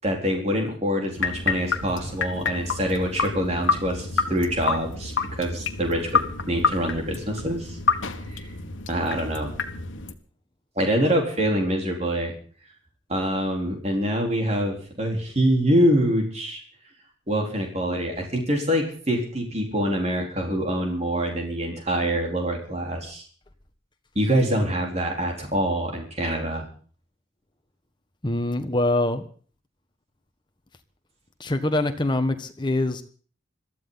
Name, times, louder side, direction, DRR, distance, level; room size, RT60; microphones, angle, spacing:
voice 1, 0.0-5.1 5.4-7.8 8.3-8.5 8.9-9.5 10.8-12.3 13.1-16.6 17.3-23.2 24.1-26.7, equal, 35° right, 1 dB, 4.2 m, -25 dB
sound 1, 1.2-10.1, left 5 dB, 80° left, 1.5 m, -28 dB
voice 2, 28.2-29.2 31.4-33.0, left 2 dB, 25° left, 7 dB, 1.5 m, -24 dB
22.5 x 14.0 x 4.1 m, 0.43 s
head